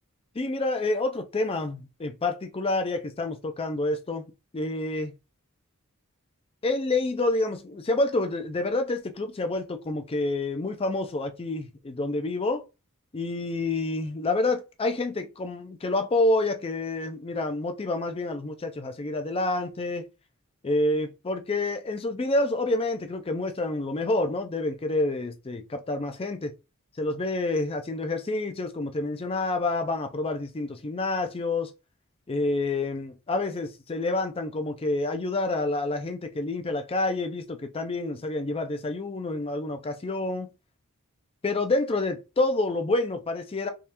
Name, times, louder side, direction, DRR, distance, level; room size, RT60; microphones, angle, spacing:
voice 1, 0.3-4.3 4.5-5.1 6.6-12.6 13.1-20.0 20.6-26.5 27.0-31.7 32.3-40.5 41.4-43.7, left 2 dB, 25° left, 0.5 m, -28 dB
3.6 x 3.1 x 2.9 m
head